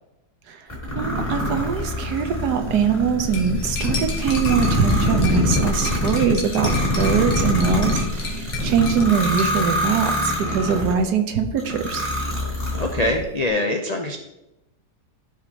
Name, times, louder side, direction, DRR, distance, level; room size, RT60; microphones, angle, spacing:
sound 1, 0.7-11.0 11.6-13.2, left 1 dB, 25° left, 2.6 m, -24 dB
voice 1, 0.9-12.0, right 6 dB, 80° right, 7 dB, 1.4 m, -22 dB
Cutlery silverware, 3.3-9.6, left 5 dB, 75° left, 1.9 m, -34 dB
voice 2, 12.8-14.2, left 1 dB, 55° left, 2 dB, 0.4 m, -23 dB
14.0 x 5.0 x 2.9 m, 0.93 s
omnidirectional pair, 1.7 m